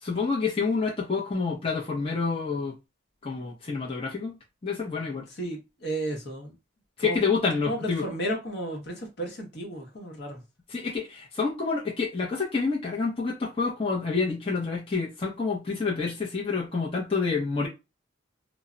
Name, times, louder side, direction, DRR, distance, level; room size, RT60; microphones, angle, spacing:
voice 1, 0.0-2.7 3.2-4.3 4.6-5.2 7.0-8.0 10.7-17.7, left 4 dB, 30° left, 0.5 m, -28 dB
voice 2, 5.3-6.6 7.0-7.2 7.6-10.4, right 1 dB, 55° left, 0.8 m, -33 dB
2.1 x 2.0 x 3.6 m
head